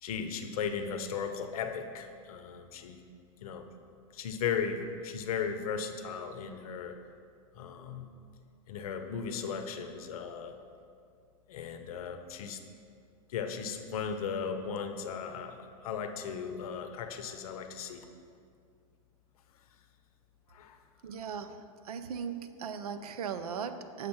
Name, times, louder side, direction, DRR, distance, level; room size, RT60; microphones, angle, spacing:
voice 1, 0.0-3.0 3.4-3.7 4.1-7.0 7.6-8.1 8.7-10.5 11.5-12.6 13.3-18.1 20.5-20.8, left 6 dB, 75° left, 7 dB, 0.6 m, -36 dB
voice 2, 21.0-21.6 21.8-24.1, right 7 dB, 85° right, 10 dB, 0.5 m, -38 dB
6.6 x 4.3 x 5.5 m, 2.3 s
hypercardioid pair, 105°, 19 cm